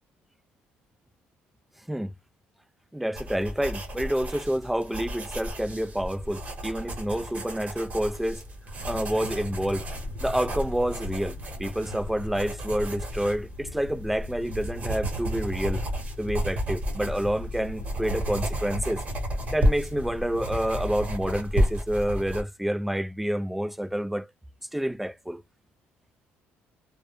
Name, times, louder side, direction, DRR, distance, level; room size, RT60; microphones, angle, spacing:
voice 1, 2.9-8.4 8.9-9.8 10.2-15.8 16.2-19.0 19.5-24.3 24.7-25.4, equal, 5° right, 0.3 m, -28 dB
sound 1, 3.2-22.4, equal, 30° right, 0.9 m, -32 dB
sound 2, 8.8-21.4, left 2 dB, 45° left, 0.7 m, -41 dB
2.1 x 2.1 x 3.0 m
cardioid pair, 125°, 5 cm